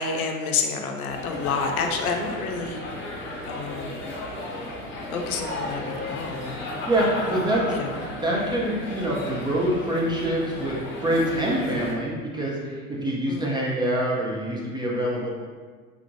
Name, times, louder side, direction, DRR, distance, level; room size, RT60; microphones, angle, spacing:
voice 1, 0.0-2.8 3.4-3.9 5.1-6.6 7.7-7.9 13.3-13.5, left 5 dB, 80° left, 3 dB, 0.6 m, -29 dB
sound 1, 1.1-11.9, left 1 dB, 25° left, 0.9 m, -34 dB
voice 2, 6.6-7.7 8.2-15.3, right 1 dB, 10° right, -4 dB, 0.5 m, -25 dB
3.5 x 2.4 x 3.1 m, 1.5 s
hypercardioid pair, 80°, 43 cm